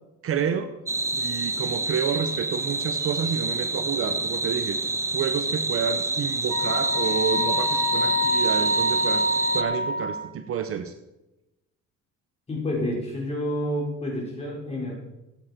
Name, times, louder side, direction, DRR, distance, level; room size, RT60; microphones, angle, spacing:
voice 1, 0.2-0.7 1.1-4.8 5.1-10.9, right 7 dB, 45° right, 8 dB, 0.8 m, -29 dB
sound 1, 0.9-9.6, right 2 dB, 10° right, 0.5 m, -27 dB
Wind instrument woodwind instrument, 6.5-10.4, left 1 dB, 60° right, 2.0 m, -26 dB
voice 2, 12.5-14.9, left 1 dB, 20° left, -3 dB, 4.5 m, -29 dB
14.5 x 9.0 x 4.3 m, 0.96 s
cardioid pair, 150°, 32 cm